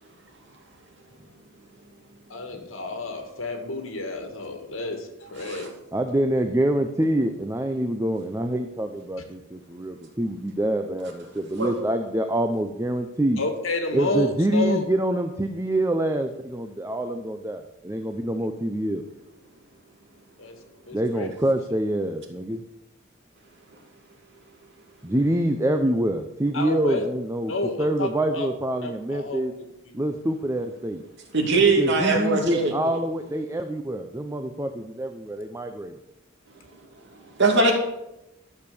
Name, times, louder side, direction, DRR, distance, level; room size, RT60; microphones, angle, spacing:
voice 1, 2.3-5.7 13.4-14.8 20.4-20.6 20.9-21.3 26.5-27.1 27.5-28.5 28.8-29.4 29.8-29.9, left 2 dB, 75° left, 4 dB, 2.2 m, -30 dB
voice 2, 5.9-13.4 13.9-19.0 20.9-22.6 25.0-27.5 27.8-29.5 29.9-31.0 31.8-35.9, right 1 dB, 15° right, 6 dB, 0.7 m, -26 dB
voice 3, 31.3-32.7 37.4-37.7, right 3 dB, 60° right, 1 dB, 2.8 m, -20 dB
13.5 x 6.8 x 6.9 m, 0.92 s
head